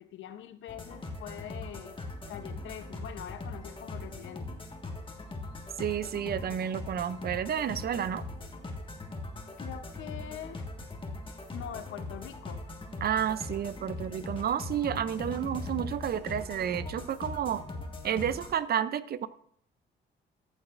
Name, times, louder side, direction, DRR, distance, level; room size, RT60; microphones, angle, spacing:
voice 1, 0.0-2.0 2.3-4.6 9.6-10.7 11.5-12.6 15.2-15.5, left 10 dB, 75° left, 10 dB, 0.8 m, -44 dB
sound 1, 0.7-18.5, left 2 dB, 25° left, 1.6 m, -40 dB
voice 2, 5.8-8.2 13.0-17.6 18.0-19.3, right 9 dB, 50° right, 15 dB, 0.5 m, -31 dB
14.5 x 7.3 x 2.5 m, 0.63 s
cardioid pair, 90°, 20 cm